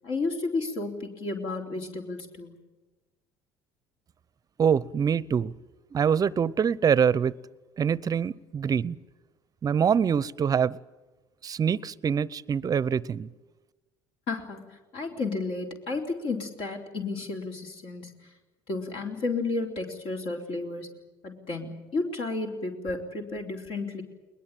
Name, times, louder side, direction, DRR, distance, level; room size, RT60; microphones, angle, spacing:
voice 1, 0.0-2.5 14.3-14.6 14.9-18.1 18.7-20.9 21.2-24.0, left 3 dB, 60° left, 2 dB, 3.6 m, -32 dB
voice 2, 4.6-5.5 5.9-7.3 7.8-9.0 9.6-10.8 11.4-13.3, right 7 dB, 35° right, 22 dB, 0.7 m, -24 dB
21.5 x 20.5 x 9.1 m, 1.2 s
supercardioid pair, 80°, 11 cm